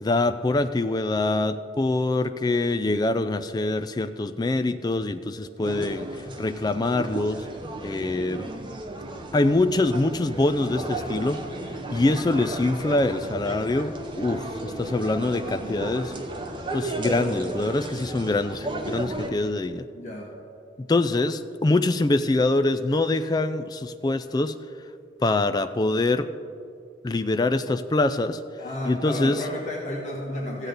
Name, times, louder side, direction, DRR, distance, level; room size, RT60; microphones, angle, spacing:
voice 1, 0.0-6.1 6.4-7.4 7.8-8.5 9.3-11.4 11.9-16.1 16.7-19.9 20.8-24.5 25.2-26.3 27.0-28.4 28.9-29.4, left 2 dB, 20° left, 11 dB, 0.3 m, -24 dB
sound 1, 5.6-19.3, right 1 dB, 25° right, 0.8 m, -34 dB
voice 2, 19.9-20.3 28.6-30.7, left 1 dB, 40° left, -5 dB, 1.7 m, -32 dB
15.0 x 8.1 x 4.0 m, 2.4 s
head